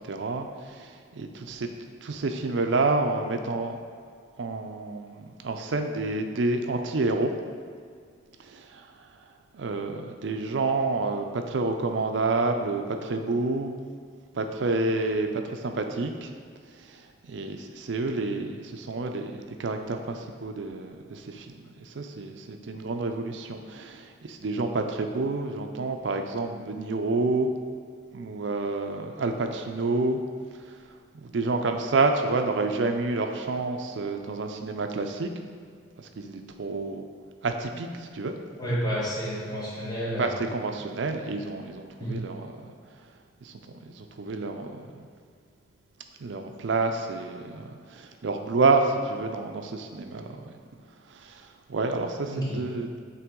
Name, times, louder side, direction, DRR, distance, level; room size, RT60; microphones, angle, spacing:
voice 1, 0.1-1.7 2.0-3.8 4.4-7.3 8.5-9.1 9.5-13.8 14.3-16.3 16.8-27.5 28.1-30.2 30.5-30.8 31.2-35.3 36.0-37.0 37.4-38.3 40.2-42.7 43.4-43.5 43.9-45.1 46.2-50.6 51.1-53.0, right 3 dB, 75° right, 5 dB, 0.5 m, -29 dB
voice 2, 38.6-40.4 42.0-42.2 52.3-52.6, equal, 20° left, -7 dB, 1.5 m, -30 dB
8.6 x 3.4 x 3.7 m, 2.1 s
head